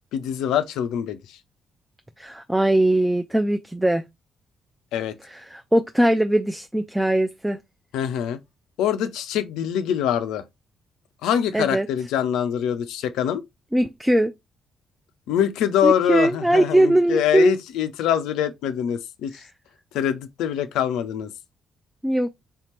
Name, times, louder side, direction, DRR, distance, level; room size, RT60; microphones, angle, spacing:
voice 1, 0.1-1.4 4.9-5.2 7.9-8.4 8.8-10.4 11.2-13.4 15.3-19.4 19.9-21.3, left 9 dB, 65° left, 0.4 m, -24 dB
voice 2, 2.2-4.0 5.2-7.6 11.5-11.9 13.7-14.3 15.8-17.5 19.3-19.5 22.0-22.3, right 1 dB, 10° right, 0.4 m, -20 dB
3.4 x 2.8 x 2.9 m
figure-of-eight pair, 40°, 0 cm